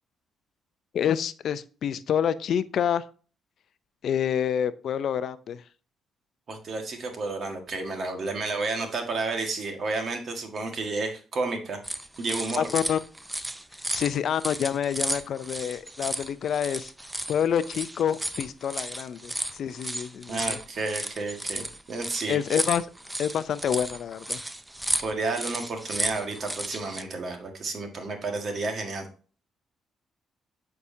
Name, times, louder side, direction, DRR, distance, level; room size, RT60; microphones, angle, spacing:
voice 1, 0.9-3.0 4.0-5.6 12.6-13.0 13.9-16.9 17.3-20.6 22.3-22.8 23.2-24.4, left 9 dB, 65° left, 15 dB, 0.4 m, -27 dB
voice 2, 6.5-11.8 12.2-12.6 20.3-22.4 25.0-29.1, right 3 dB, 55° right, 4 dB, 1.6 m, -31 dB
sound 1, 11.8-27.0, right 1 dB, 10° right, 0.6 m, -34 dB
8.1 x 4.8 x 2.7 m, 0.39 s
cardioid pair, 80°, 0 cm